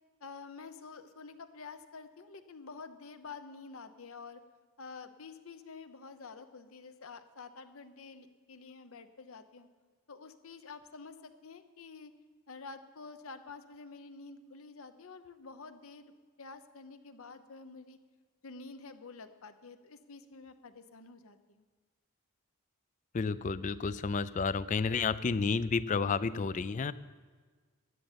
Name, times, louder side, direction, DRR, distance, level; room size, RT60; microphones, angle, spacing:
voice 1, 0.2-4.4 4.8-9.7 10.1-12.1 12.5-16.1 16.4-18.0 18.4-21.7, left 4 dB, 70° left, 10 dB, 0.8 m, -49 dB
voice 2, 23.1-26.9, left 4 dB, 35° left, 17 dB, 0.3 m, -31 dB
13.0 x 6.8 x 9.0 m, 1.5 s
head